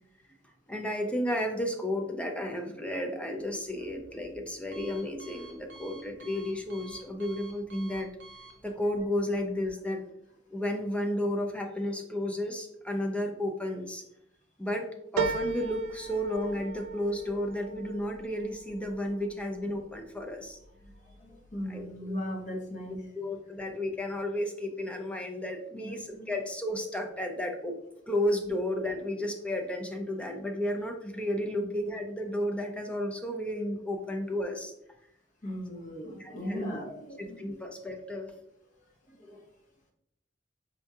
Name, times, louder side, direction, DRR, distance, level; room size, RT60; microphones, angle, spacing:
voice 1, 0.7-8.1 8.6-10.0 10.5-14.0 14.6-20.6 21.7-22.2 23.2-27.8 28.1-34.7 36.2-36.7 37.4-38.3, left 1 dB, 5° left, 3 dB, 0.4 m, -32 dB
Alarm, 3.3-9.7, right 2 dB, 65° right, 0.7 m, -53 dB
sound 1, 15.2-19.9 20.4-21.1 21.5-21.6, right 5 dB, 90° right, 0.3 m, -36 dB
voice 2, 20.8-23.1 25.8-25.9 26.2-26.3 35.4-37.5 39.1-39.4, equal, 40° left, 0 dB, 0.8 m, -38 dB
4.4 x 2.7 x 2.3 m, 0.77 s
head